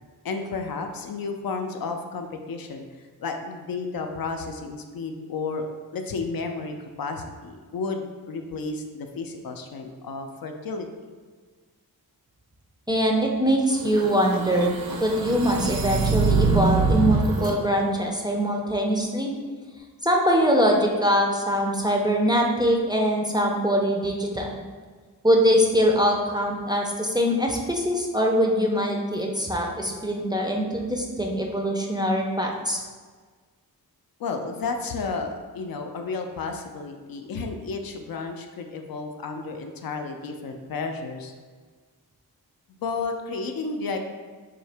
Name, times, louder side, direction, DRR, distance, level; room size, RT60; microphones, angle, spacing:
voice 1, 0.2-2.8 3.2-5.6 5.9-10.9 34.2-41.3 42.8-44.0, left 4 dB, 65° left, 4 dB, 0.5 m, -32 dB
voice 2, 12.9-14.8 15.0-19.3 20.0-24.6 25.2-32.8, equal, 10° right, -1 dB, 0.4 m, -23 dB
sound 1, 13.8-17.5, right 4 dB, 65° right, 0.6 m, -24 dB
3.8 x 2.7 x 3.3 m, 1.5 s
wide cardioid pair, 90°, 38 cm